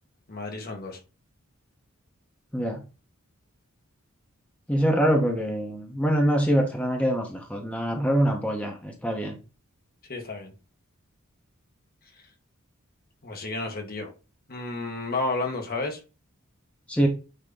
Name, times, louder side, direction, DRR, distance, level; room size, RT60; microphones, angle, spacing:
voice 1, 0.3-1.0 10.1-10.5 13.2-14.1 14.5-16.0, left 3 dB, 45° left, 1.8 m, -31 dB
voice 2, 4.7-9.4 16.9-17.1, equal, 5° left, 1.3 m, -24 dB
9.1 x 3.2 x 4.0 m
head